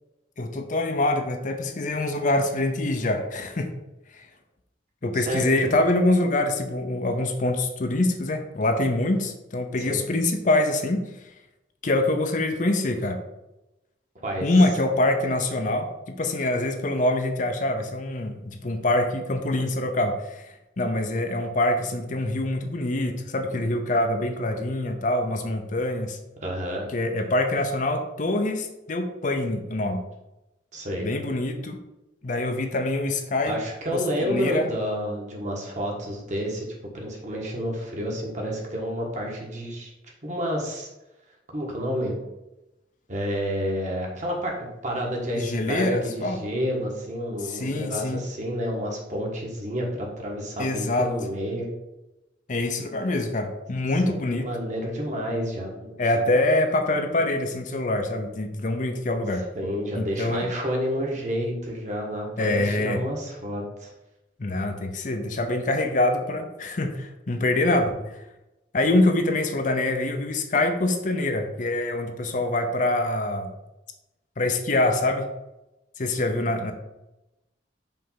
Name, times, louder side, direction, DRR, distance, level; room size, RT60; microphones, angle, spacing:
voice 1, 0.4-3.7 4.1-4.3 5.0-11.0 11.8-13.2 14.4-20.5 20.8-26.2 26.9-30.0 31.0-31.8 32.2-33.6 33.9-34.7 45.3-46.4 47.5-48.2 50.6-51.1 52.5-54.5 56.0-59.5 59.9-60.5 62.4-63.0 64.4-68.2 68.7-73.5 74.4-75.3 76.0-76.7, left 2 dB, 45° left, 6 dB, 0.6 m, -25 dB
voice 2, 5.1-5.5 9.8-10.0 14.2-14.4 26.4-26.9 30.7-31.1 33.4-36.7 36.9-39.9 40.2-40.9 41.5-42.2 43.1-51.7 54.0-56.0 59.5-63.9, equal, 40° right, -1 dB, 1.4 m, -29 dB
5.4 x 3.4 x 5.7 m, 0.95 s
head